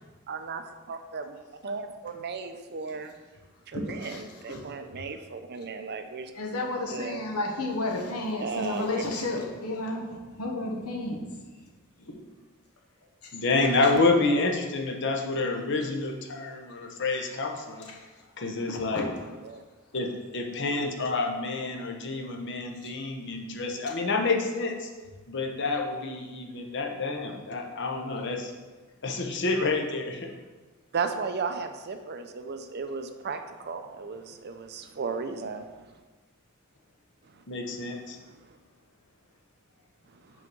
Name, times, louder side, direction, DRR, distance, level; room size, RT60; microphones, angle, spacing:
voice 1, 0.3-1.4 1.6-3.1 3.7-6.3 6.9-7.2 8.4-9.0 14.3-14.5 19.4-19.6 30.9-35.9, right 5 dB, 50° right, 7 dB, 0.5 m, -35 dB
voice 2, 3.7-4.7 6.3-11.4 12.0-12.1 13.2-13.3 18.7-19.0, left 2 dB, 90° left, 1 dB, 1.1 m, -32 dB
voice 3, 13.3-17.9 18.4-19.1 19.9-24.9 25.3-28.5 29.0-30.3 37.5-38.2, left 3 dB, 55° left, 2 dB, 0.9 m, -28 dB
6.0 x 4.0 x 6.0 m, 1.3 s
head